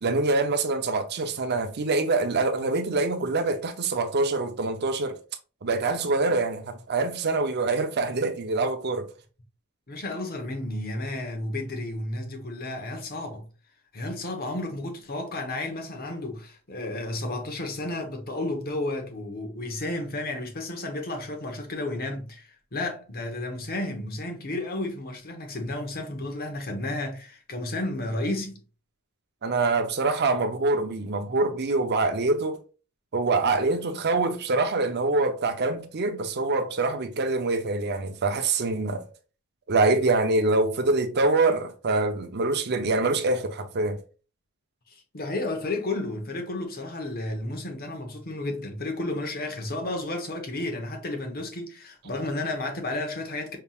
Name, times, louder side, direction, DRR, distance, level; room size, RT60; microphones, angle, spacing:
voice 1, 0.0-5.2 5.6-9.1 29.4-32.6 33.1-39.0 39.7-44.0, right 3 dB, 50° right, 0.7 m, -25 dB
voice 2, 9.9-13.5 13.9-28.6 44.9-53.6, left 2 dB, 45° left, 1.1 m, -32 dB
5.7 x 3.4 x 2.4 m
head